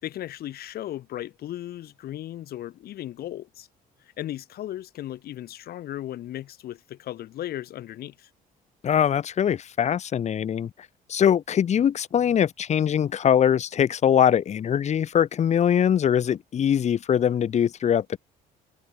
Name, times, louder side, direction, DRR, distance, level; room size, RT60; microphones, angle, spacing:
voice 1, 0.0-3.7 4.2-8.3, left 13 dB, 65° left, 3.4 m, -36 dB
voice 2, 8.8-10.7 11.1-18.2, left 9 dB, 40° left, 1.1 m, -22 dB
cardioid pair, 110°, 17 cm